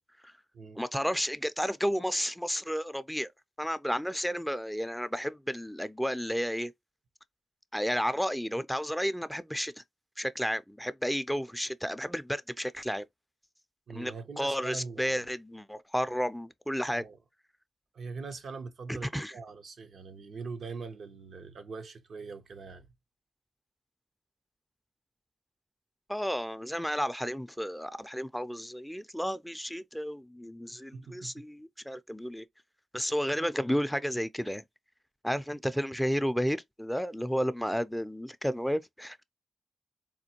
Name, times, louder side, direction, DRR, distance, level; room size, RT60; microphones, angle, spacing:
voice 1, 0.8-3.3 3.6-6.7 7.7-9.8 10.2-13.0 13.9-17.0 18.9-19.3 26.1-32.5 32.9-34.6 35.2-39.2, equal, ahead, 0.4 m, -32 dB
voice 2, 13.9-15.3 16.9-17.2 17.9-22.9 30.6-31.4, right 4 dB, 70° right, 0.6 m, -42 dB
4.3 x 2.2 x 2.8 m
supercardioid pair, 40°, 0 cm